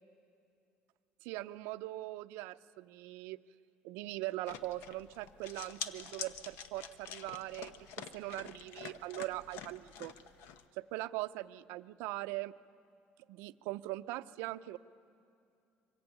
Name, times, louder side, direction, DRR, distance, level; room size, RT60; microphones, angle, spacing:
voice 1, 1.2-3.4 3.8-7.7 8.1-10.1 10.8-12.5 13.3-14.8, right 18 dB, 90° right, 12 dB, 0.6 m, -41 dB
sound 1, 4.5-10.6, left 7 dB, 80° left, 1.0 m, -47 dB
24.5 x 20.5 x 9.0 m, 2.5 s
cardioid pair, 130°, 4 cm